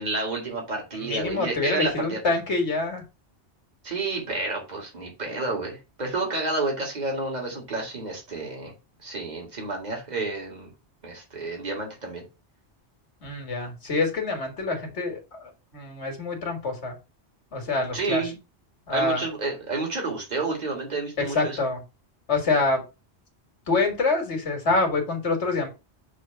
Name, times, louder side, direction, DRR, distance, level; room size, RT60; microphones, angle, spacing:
voice 1, 0.0-2.2 3.8-8.7 9.0-10.7 11.0-12.2 17.9-18.4 18.9-21.7, right 3 dB, 40° right, 1 dB, 2.1 m, -30 dB
voice 2, 1.0-3.0 13.2-16.9 17.5-18.2 18.9-19.2 21.2-21.8 22.3-22.8 23.7-25.7, left 3 dB, 80° left, 4 dB, 2.1 m, -26 dB
6.3 x 3.1 x 5.6 m, 0.28 s
omnidirectional pair, 1.1 m